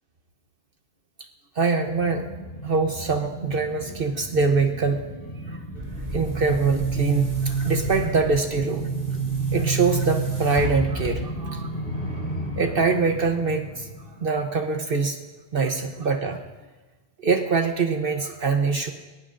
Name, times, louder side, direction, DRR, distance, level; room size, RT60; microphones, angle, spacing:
voice 1, 1.6-2.3 2.6-5.0 5.5-5.6 6.1-8.9 9.5-11.7 12.6-13.9 14.2-15.2 15.5-16.4 17.2-18.9, right 4 dB, 55° right, 5 dB, 1.1 m, -24 dB
sound 1, 1.9-14.9 15.3-15.4, equal, 55° left, 3.3 m, -35 dB
Boom, 5.7-11.6, right 5 dB, 35° right, 2.9 m, -28 dB
21.0 x 21.0 x 2.5 m, 1.2 s
omnidirectional pair, 1.1 m